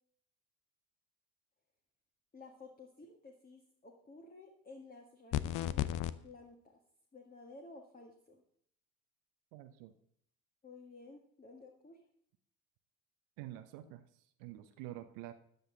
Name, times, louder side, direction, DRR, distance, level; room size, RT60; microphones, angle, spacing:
voice 1, 2.3-6.8 7.1-8.4 10.6-12.0, left 3 dB, 20° left, 2 dB, 1.9 m, -54 dB
sound 1, 5.3-6.1, left 13 dB, 45° left, 0.7 m, -33 dB
voice 2, 9.5-9.9 13.4-14.0 14.4-15.3, right 14 dB, 55° right, 9 dB, 1.0 m, -47 dB
14.0 x 9.8 x 3.9 m, 0.68 s
figure-of-eight pair, 60°, 44 cm